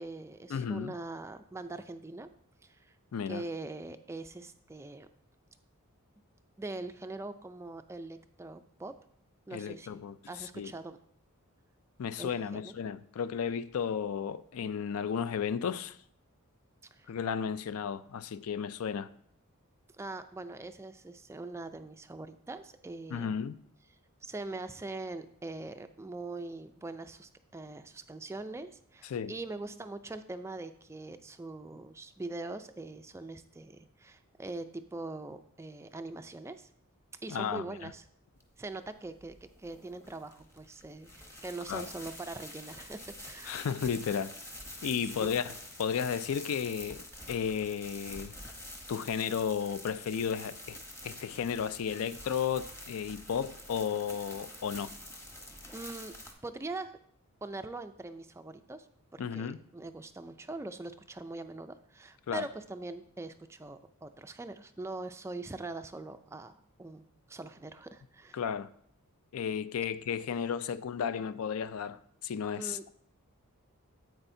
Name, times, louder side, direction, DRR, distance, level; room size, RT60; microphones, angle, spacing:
voice 1, 0.0-2.3 2.6-2.9 3.3-5.1 6.6-9.0 9.5-11.0 12.2-12.7 16.9-17.1 19.9-23.3 24.2-36.7 37.2-38.0 38.6-43.6 45.0-45.4 55.7-56.1 56.4-56.9 57.4-58.9 59.1-68.4 72.6-72.8, right 2 dB, 10° right, 0.3 m, -42 dB
voice 2, 0.5-0.9 3.1-3.4 9.5-10.7 12.0-16.0 17.1-19.1 23.1-23.6 29.1-29.3 37.3-37.6 41.7-41.9 43.5-44.3 44.8-45.5 45.8-48.3 48.9-50.8 51.0-54.9 59.2-59.6 62.3-62.5 68.3-68.7 69.3-72.9, left 7 dB, 65° left, 0.4 m, -33 dB
sound 1, 38.4-56.3, left 1 dB, 10° left, 0.9 m, -47 dB
9.8 x 8.0 x 2.6 m
head